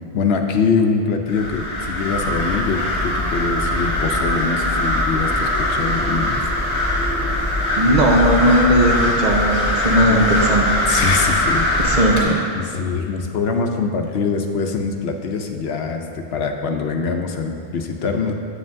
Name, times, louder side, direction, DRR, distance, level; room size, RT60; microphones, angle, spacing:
voice 1, 0.1-6.4 10.1-10.2 10.9-12.0 12.6-18.3, left 4 dB, 75° left, 4 dB, 0.8 m, -23 dB
sound 1, 1.3-12.2, left 1 dB, 25° left, 1.8 m, -21 dB
voice 2, 7.8-10.8 11.8-12.4, right 1 dB, 45° right, -2 dB, 0.8 m, -17 dB
8.5 x 7.6 x 2.6 m, 2.7 s
omnidirectional pair, 1.1 m